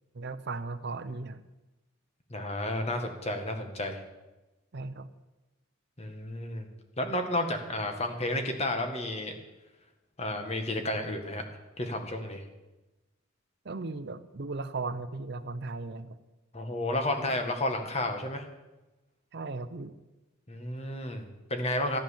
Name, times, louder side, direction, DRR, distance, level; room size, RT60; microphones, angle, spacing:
voice 1, 0.1-1.4 4.7-5.1 13.6-16.2 19.3-20.0, right 3 dB, 55° right, 12 dB, 0.7 m, -37 dB
voice 2, 2.3-4.0 6.0-6.7 7.0-9.3 10.2-11.4 11.8-12.4 16.5-18.4 20.5-22.0, left 1 dB, 30° left, 5 dB, 1.7 m, -32 dB
14.5 x 9.2 x 7.2 m, 1.1 s
head